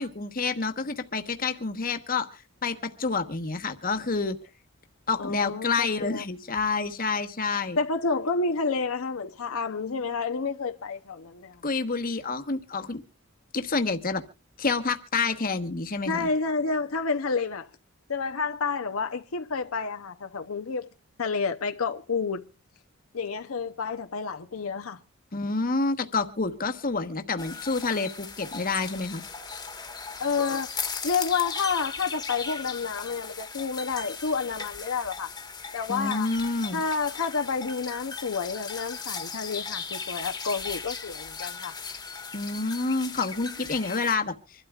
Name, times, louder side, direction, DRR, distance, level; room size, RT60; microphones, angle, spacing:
voice 1, 0.0-4.4 5.1-7.8 11.6-13.0 13.5-14.2 14.6-16.3 25.3-29.2 35.9-36.8 42.3-44.3, left 4 dB, 40° left, 1.2 m, -28 dB
voice 2, 5.2-6.3 7.8-11.6 16.1-17.7 18.1-20.9 21.2-22.4 23.1-25.0 30.2-30.7 31.0-35.3 35.7-36.3 36.7-41.7 42.1-42.2, left 4 dB, 75° left, 0.7 m, -29 dB
sound 1, 27.4-44.2, left 5 dB, 20° left, 1.4 m, -37 dB
25.5 x 12.5 x 2.4 m
head